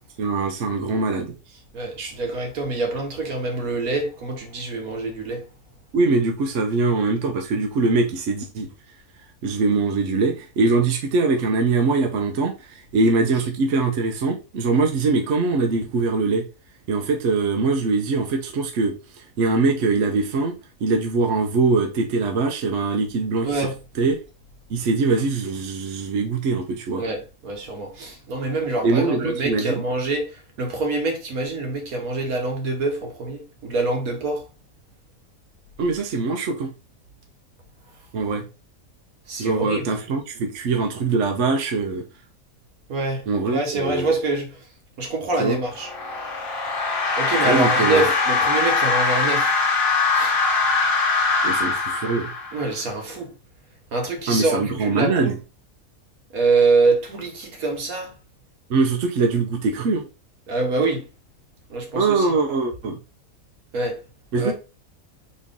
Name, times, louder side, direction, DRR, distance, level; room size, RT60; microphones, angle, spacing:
voice 1, 0.2-1.4 5.9-8.7 9.4-16.5 16.9-18.9 19.4-20.5 20.8-23.7 24.0-24.2 24.7-27.0 28.8-29.8 35.8-36.7 38.1-38.5 39.4-42.0 43.3-44.1 45.4-45.6 47.4-48.0 51.4-52.3 54.3-55.3 58.7-60.1 61.9-63.0 64.3-64.5, right 3 dB, 65° right, 1.0 m, -22 dB
voice 2, 1.7-5.4 23.4-23.8 27.0-34.4 39.3-39.9 42.9-44.6 45.0-45.9 47.2-49.5 50.1-50.4 52.5-53.3 53.9-55.4 56.3-58.1 60.5-61.0 61.7-62.3 63.7-64.0 64.3-64.5, right 3 dB, 80° right, 1.6 m, -25 dB
sound 1, 45.7-52.8, left 4 dB, 65° left, 1.3 m, -22 dB
4.3 x 3.1 x 3.5 m
omnidirectional pair, 1.5 m